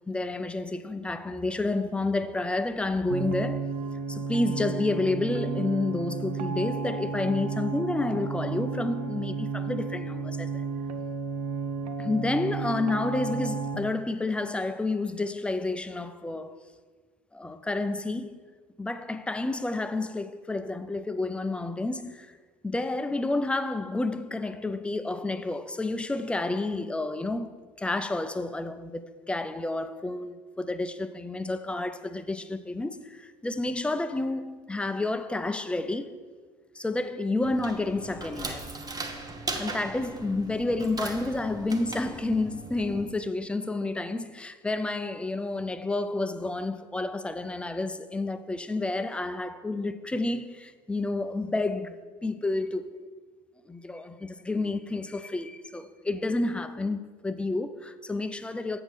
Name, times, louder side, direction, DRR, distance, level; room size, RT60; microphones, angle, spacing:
voice 1, 0.1-3.7 4.1-10.7 12.0-16.6 17.3-18.4 18.8-22.3 22.6-36.1 36.7-38.7 39.5-53.0 53.7-58.8, left 2 dB, 5° left, 0.3 m, -30 dB
sound 1, 3.1-13.7, right 5 dB, 80° right, 0.5 m, -32 dB
sound 2, 37.4-43.1, right 3 dB, 20° right, 0.8 m, -38 dB
7.7 x 6.5 x 3.2 m
hypercardioid pair, 70°, 20 cm